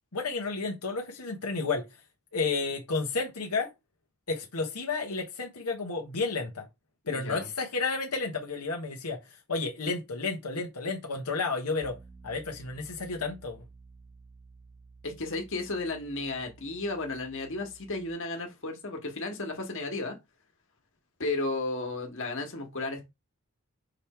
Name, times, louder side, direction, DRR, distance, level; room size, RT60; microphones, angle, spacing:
voice 1, 0.1-1.8 2.3-3.7 4.3-6.6 7.1-12.0 12.2-13.6, left 4 dB, 90° left, 1.4 m, -31 dB
voice 2, 7.1-7.5 15.0-20.2 21.2-23.1, left 2 dB, 60° left, 1.9 m, -34 dB
Piano, 11.8-18.1, right 3 dB, 20° right, 0.8 m, -53 dB
6.4 x 3.6 x 4.5 m
head